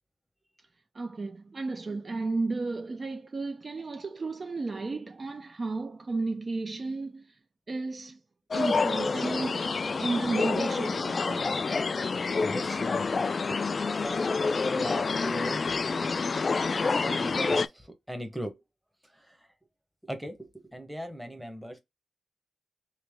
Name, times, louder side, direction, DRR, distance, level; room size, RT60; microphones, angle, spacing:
voice 1, 0.9-7.4 7.7-8.2 8.5-11.7, right 3 dB, 45° right, 0.5 m, -33 dB
sound 1, 8.5-17.7, left 4 dB, 50° left, 0.3 m, -28 dB
voice 2, 12.1-13.2 13.5-13.6 14.0-14.5 14.7-15.8 16.7-18.6 19.1-19.5 20.0-21.8, equal, 5° right, 1.0 m, -38 dB
3.2 x 3.0 x 3.5 m
cardioid pair, 50°, 0 cm